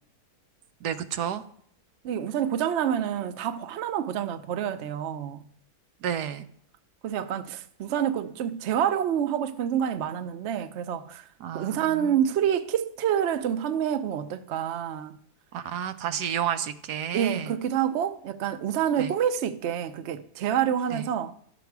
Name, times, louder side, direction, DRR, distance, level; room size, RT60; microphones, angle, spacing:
voice 1, 0.8-1.4 6.0-6.4 11.4-12.2 15.5-17.5 19.0-19.1 20.9-21.1, right 9 dB, 85° right, 1.2 m, -31 dB
voice 2, 2.0-5.4 7.0-11.3 11.5-15.2 17.1-21.4, right 9 dB, 60° right, 0.7 m, -27 dB
11.0 x 7.0 x 4.6 m
omnidirectional pair, 1.7 m